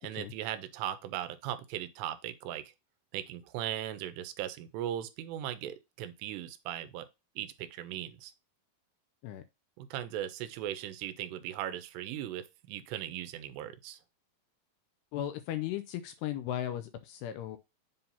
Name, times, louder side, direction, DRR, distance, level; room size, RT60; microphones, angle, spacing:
voice 1, 0.0-2.6 3.1-7.1 7.4-8.3 9.8-14.0, right 11 dB, 80° right, 2.7 m, -38 dB
voice 2, 15.1-17.6, left 11 dB, 80° left, 2.5 m, -36 dB
7.7 x 2.8 x 5.4 m
omnidirectional pair, 5.0 m